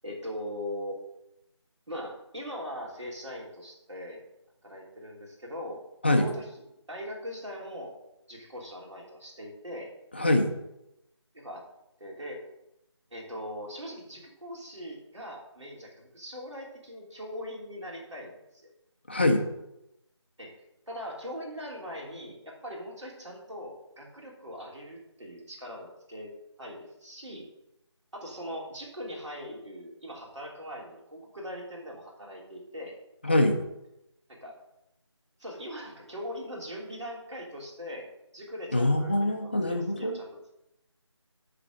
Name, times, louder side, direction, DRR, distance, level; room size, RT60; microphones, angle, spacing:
voice 1, 0.0-1.0 1.9-4.2 4.6-6.4 6.9-7.9 8.3-9.9 11.3-11.6 12.0-12.4 13.1-18.3 20.4-20.5 20.9-26.3 26.6-27.4 28.1-32.9 34.3-34.5 35.4-38.1 38.3-40.3, equal, 75° right, -1 dB, 3.3 m, -40 dB
voice 2, 10.1-10.5 19.1-19.4 33.2-33.6 38.7-40.2, left 1 dB, 20° left, 3 dB, 0.6 m, -24 dB
10.5 x 4.2 x 6.3 m, 0.86 s
figure-of-eight pair, 170°, 15 cm